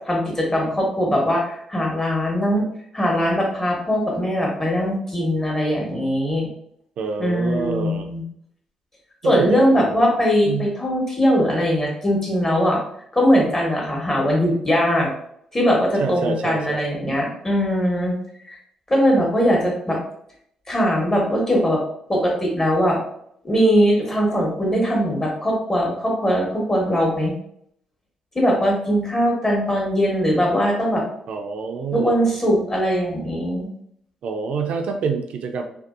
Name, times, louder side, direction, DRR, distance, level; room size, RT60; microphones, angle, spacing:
voice 1, 0.0-2.6 2.9-6.5 7.2-8.2 9.2-12.8 13.1-15.1 15.5-18.1 18.4-18.6 18.9-20.0 20.7-21.8 22.1-23.0 23.4-27.3 28.3-31.0 31.9-33.7, equal, 20° left, -2 dB, 1.2 m, -20 dB
voice 2, 7.0-8.1 9.2-10.1 10.4-10.8 16.0-16.8 31.3-32.1 34.2-35.6, right 5 dB, 65° right, 5 dB, 0.4 m, -27 dB
2.6 x 2.3 x 2.4 m, 0.69 s
supercardioid pair, 55°, 2 cm